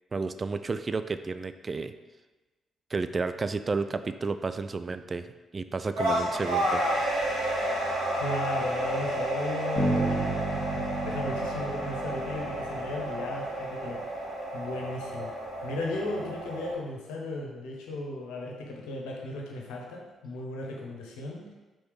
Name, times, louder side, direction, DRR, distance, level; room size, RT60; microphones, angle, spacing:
voice 1, 0.1-1.9 2.9-5.3 5.5-6.8, right 4 dB, 35° right, 11 dB, 0.3 m, -31 dB
sound 1, 5.9-16.7, right 1 dB, 85° right, 1.7 m, -31 dB
voice 2, 8.1-15.3 15.6-21.5, left 1 dB, 75° left, -2 dB, 1.0 m, -36 dB
Bass guitar, 9.8-13.6, right 2 dB, 20° left, 1.6 m, -32 dB
4.8 x 3.9 x 4.9 m, 1.2 s
hypercardioid pair, 45°, 0 cm